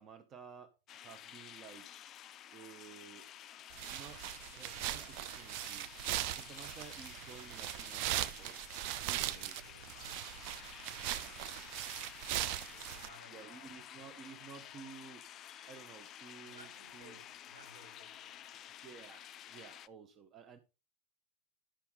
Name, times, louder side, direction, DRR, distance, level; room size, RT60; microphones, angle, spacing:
voice 1, 0.0-1.8 2.5-3.3 3.8-4.2 4.5-5.9 6.3-8.6 9.0-9.5 13.3-15.3 15.7-17.2 18.8-20.6, right 6 dB, 30° right, 0.8 m, -54 dB
sound 1, 0.9-19.9, left 11 dB, 30° left, 0.4 m, -52 dB
sound 2, 3.7-13.1, right 14 dB, 45° right, 0.4 m, -40 dB
voice 2, 9.1-10.8 11.2-11.6 12.7-13.8 16.4-18.6, right 1 dB, 75° right, 4.7 m, -60 dB
11.5 x 5.7 x 4.0 m
figure-of-eight pair, 90°, 0 cm